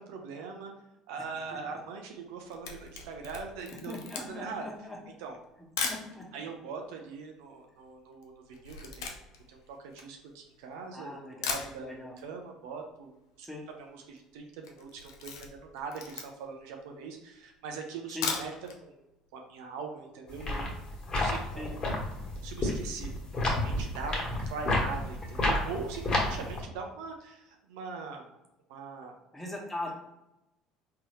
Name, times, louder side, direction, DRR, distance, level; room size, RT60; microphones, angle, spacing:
voice 1, 0.1-0.7 1.1-3.9 4.2-4.7 5.2-5.4 6.3-9.2 9.5-13.1 13.4-18.5 18.8-19.0 19.3-20.7 21.1-21.7 22.4-23.1 23.5-28.2 28.7-29.2, right 5 dB, 75° right, 3 dB, 0.6 m, -42 dB
Camera, 2.2-6.1 6.8-6.9 7.1-10.7 11.1-11.2 11.4-12.3 12.5-12.6 12.9-13.0 13.2-13.7 14.0-14.2 14.6-16.6 17.1-17.2 18.0-18.8 19.1-19.2 19.6-19.7, left 5 dB, 85° left, 0.5 m, -38 dB
voice 2, 3.7-5.0 5.8-6.2 10.9-12.1 13.4-13.7 18.1-18.3 21.5-21.7 29.3-29.9, left 1 dB, 5° left, -1 dB, 1.2 m, -40 dB
sound 1, 20.3-26.6, left 2 dB, 35° left, 1.4 m, -31 dB
3.8 x 2.8 x 3.1 m, 0.92 s
hypercardioid pair, 65°, 2 cm